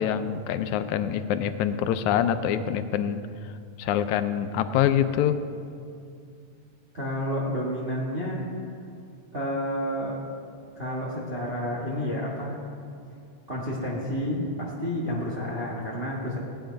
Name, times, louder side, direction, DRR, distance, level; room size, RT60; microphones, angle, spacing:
voice 1, 0.0-3.2 3.8-5.4, left 9 dB, 85° left, 10 dB, 2.1 m, -25 dB
voice 2, 6.9-8.4 9.3-10.2 10.7-12.6 13.5-16.4, equal, 25° right, -4 dB, 1.5 m, -30 dB
16.5 x 10.5 x 5.2 m, 2.4 s
omnidirectional pair, 3.3 m